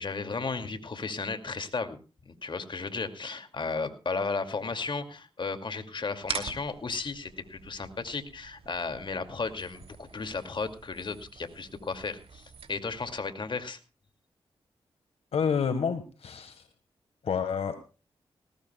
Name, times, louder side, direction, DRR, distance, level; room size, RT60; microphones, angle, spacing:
voice 1, 0.0-2.0 2.3-13.8, left 4 dB, 50° left, 8 dB, 2.4 m, -34 dB
sound 1, 6.2-13.2, right 5 dB, 70° right, 2.8 m, -44 dB
voice 2, 15.3-16.7 17.2-17.8, left 6 dB, 80° left, 9 dB, 1.5 m, -29 dB
19.5 x 19.0 x 2.3 m, 0.33 s
cardioid pair, 55°, 10 cm